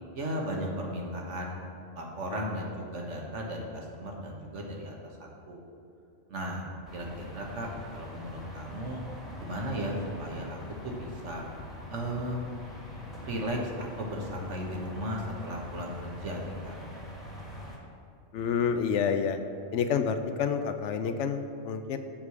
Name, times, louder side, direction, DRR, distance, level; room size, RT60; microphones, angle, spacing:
voice 1, 0.1-1.6 1.9-5.6 6.3-9.0 9.4-10.6 10.8-11.4 11.9-12.4 13.2-16.8, equal, 75° right, 0 dB, 1.6 m, -36 dB
sound 1, 6.9-17.8, left 1 dB, ahead, 1.4 m, -44 dB
voice 2, 18.3-19.4 19.7-22.0, left 6 dB, 75° left, 8 dB, 0.9 m, -28 dB
7.4 x 4.8 x 7.0 m, 2.6 s
omnidirectional pair, 1.3 m